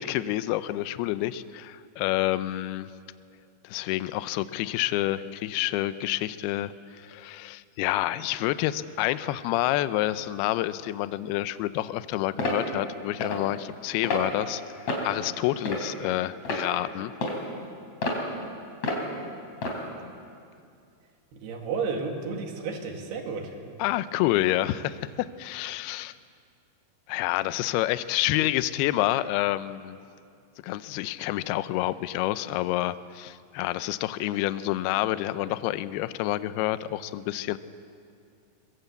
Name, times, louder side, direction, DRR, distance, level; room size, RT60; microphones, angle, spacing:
voice 1, 0.0-2.9 3.6-17.1 23.8-26.1 27.1-30.0 30.6-37.6, left 15 dB, 80° left, 14 dB, 2.5 m, -28 dB
sound 1, 12.4-12.6 13.2-13.4 14.0-14.3 14.9-15.1 15.7-16.0 16.5-16.6 17.2-17.4 18.0-18.2 18.8-19.0 19.6-19.8, left 2 dB, 45° left, 4.2 m, -28 dB
voice 2, 21.4-23.5, right 5 dB, 70° right, 3 dB, 4.0 m, -32 dB
23.0 x 21.5 x 8.3 m, 2.3 s
omnidirectional pair, 4.9 m